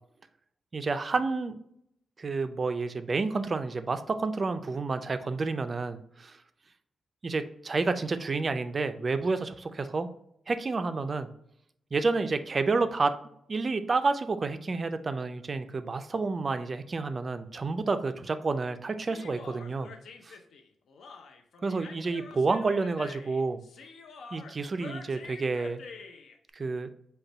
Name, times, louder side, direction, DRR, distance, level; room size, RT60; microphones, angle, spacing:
voice 1, 0.7-1.6 2.2-6.4 7.2-10.1 10.5-11.3 11.9-13.1 13.5-19.9 20.2-20.4 21.6-23.6 24.3-25.8 26.5-26.9, right 3 dB, 30° right, 10 dB, 0.3 m, -29 dB
Human voice, 19.0-26.4, left 4 dB, 70° left, 0.5 m, -47 dB
5.3 x 2.2 x 4.1 m, 0.72 s
wide cardioid pair, 155°, 0 cm